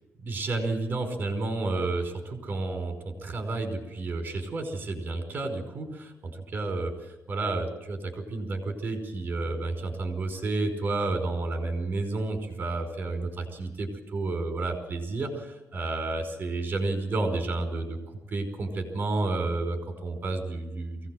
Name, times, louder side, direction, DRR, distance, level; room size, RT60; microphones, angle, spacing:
voice 1, 0.2-6.9 7.3-18.0 18.3-21.1, right 3 dB, 40° right, 5 dB, 5.2 m, -31 dB
23.5 x 17.5 x 7.9 m, 0.98 s
cardioid pair, 150°, 5 cm